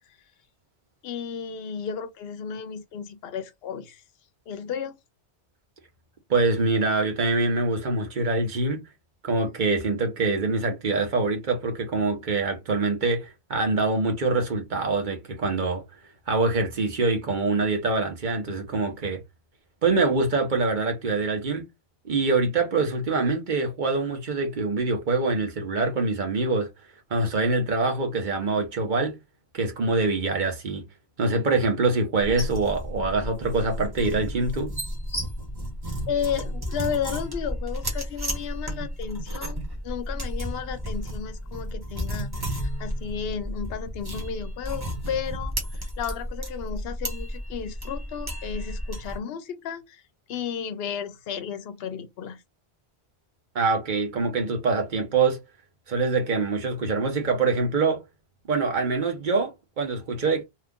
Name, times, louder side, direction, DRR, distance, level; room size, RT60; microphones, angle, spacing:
voice 1, 1.0-4.0 4.5-5.0 36.1-50.0 50.3-52.4, left 7 dB, 70° left, 0.8 m, -33 dB
voice 2, 6.3-8.9 9.2-15.8 16.3-19.2 19.8-21.6 22.0-26.7 27.1-29.2 29.5-30.8 31.2-34.7 53.5-55.4 55.9-58.0 58.5-60.4, right 3 dB, 50° right, 1.1 m, -24 dB
sound 1, 32.2-49.2, equal, 20° right, 1.1 m, -33 dB
2.9 x 2.4 x 3.6 m
omnidirectional pair, 1.1 m